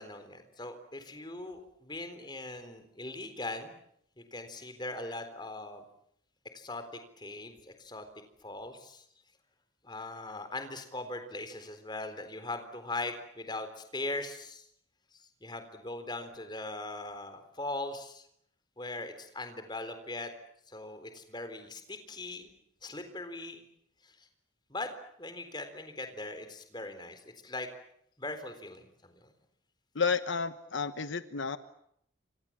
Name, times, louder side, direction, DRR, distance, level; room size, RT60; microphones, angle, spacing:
voice 1, 0.0-3.7 4.2-5.8 6.5-8.1 8.4-9.0 9.8-14.6 15.4-18.2 18.8-20.3 20.7-22.5 22.8-23.6 24.7-24.9 25.2-27.7 28.2-29.3, left 2 dB, 20° left, 8 dB, 3.9 m, -40 dB
voice 2, 29.9-31.6, left 5 dB, 75° left, 11 dB, 1.1 m, -31 dB
29.0 x 26.5 x 7.5 m, 0.73 s
head